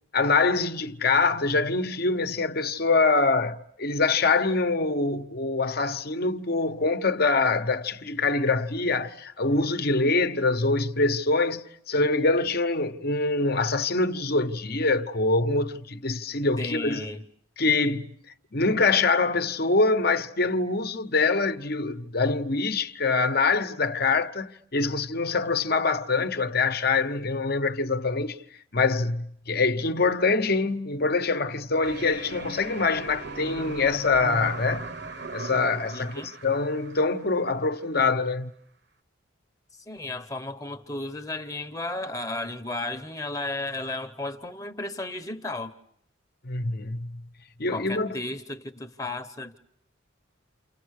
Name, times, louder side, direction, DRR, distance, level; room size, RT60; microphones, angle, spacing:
voice 1, 0.1-17.0 17.6-18.1 18.5-28.4 28.7-34.9 35.3-38.5 46.4-47.2 47.6-48.2, left 3 dB, 50° left, 1.1 m, -24 dB
voice 2, 16.6-17.2 35.9-36.3 39.9-45.7 47.7-49.6, left 2 dB, 15° left, 1.0 m, -34 dB
sound 1, 31.8-37.8, right 3 dB, 55° right, 1.2 m, -39 dB
29.5 x 29.0 x 6.6 m
head